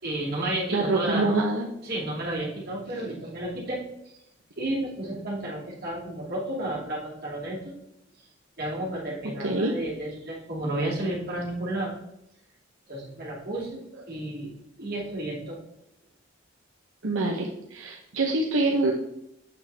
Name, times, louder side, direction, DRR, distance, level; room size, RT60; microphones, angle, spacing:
voice 1, 0.0-1.3 1.8-3.8 4.6-7.7 8.6-11.9 12.9-13.8 14.1-14.5 14.8-15.6, right 1 dB, 50° right, -5 dB, 2.9 m, -32 dB
voice 2, 0.7-1.7 9.4-9.7 17.0-18.9, right 2 dB, 85° right, 0 dB, 0.9 m, -25 dB
7.1 x 6.9 x 3.5 m, 0.81 s
head